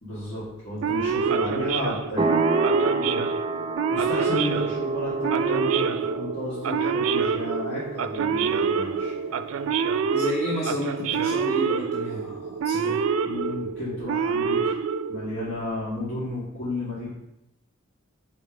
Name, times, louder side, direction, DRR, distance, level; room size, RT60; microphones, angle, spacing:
voice 1, 0.0-2.4 3.9-9.1 13.2-14.8 15.1-17.1, left 1 dB, 55° left, -11 dB, 1.8 m, -32 dB
Male speech man speaking / Siren, 0.8-15.5, right 6 dB, 80° right, 0.4 m, -26 dB
sound 1, 2.2-10.5, right 3 dB, 25° right, 0.6 m, -30 dB
voice 2, 3.0-3.3 10.1-13.0, left 1 dB, 30° left, -4 dB, 0.8 m, -31 dB
5.1 x 4.3 x 5.0 m, 0.85 s
head